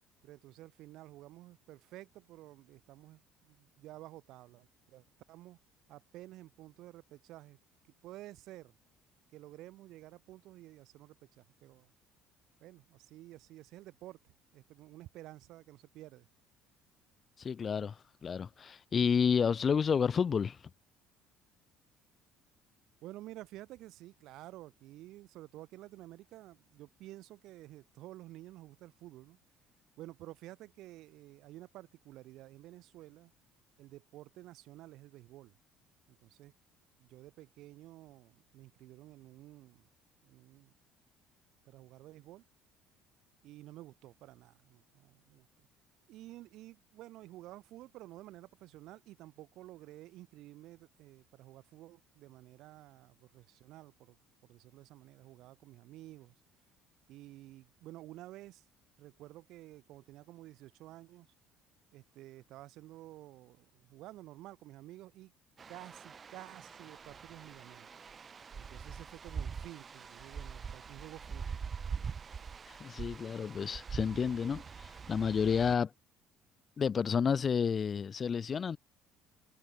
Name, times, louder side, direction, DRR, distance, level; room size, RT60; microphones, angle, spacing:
voice 1, 0.2-5.6 5.9-7.6 8.0-8.7 9.3-11.9 12.6-16.3 23.0-29.4 30.0-33.3 33.8-35.6 36.1-36.5 37.0-39.9 40.2-40.7 41.6-42.4 43.4-45.7 46.1-54.2 54.4-56.3 57.1-58.6 59.0-61.3 61.9-65.3 65.7-67.9 68.6-71.6, right 16 dB, 60° right, 2.9 m, -52 dB
voice 2, 17.4-18.0 18.2-20.6 72.7-75.9 76.8-78.8, left 6 dB, 25° left, 0.4 m, -30 dB
sound 1, 65.6-75.8, right 6 dB, 25° right, 1.9 m, -44 dB
cardioid pair, 155°, 0 cm